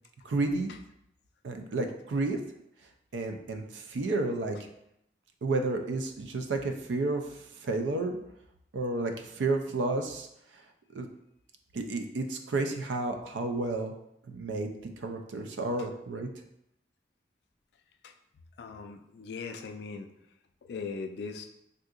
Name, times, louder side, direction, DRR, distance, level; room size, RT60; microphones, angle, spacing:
voice 1, 0.2-0.7 1.4-2.4 3.1-4.6 5.4-8.2 8.7-10.3 10.9-11.1 11.7-13.9 14.3-14.7 15.0-16.3, right 2 dB, 90° right, 5 dB, 0.4 m, -31 dB
voice 2, 18.6-20.1 20.6-21.5, left 4 dB, 65° left, 6 dB, 0.3 m, -39 dB
3.6 x 2.7 x 2.4 m, 0.78 s
head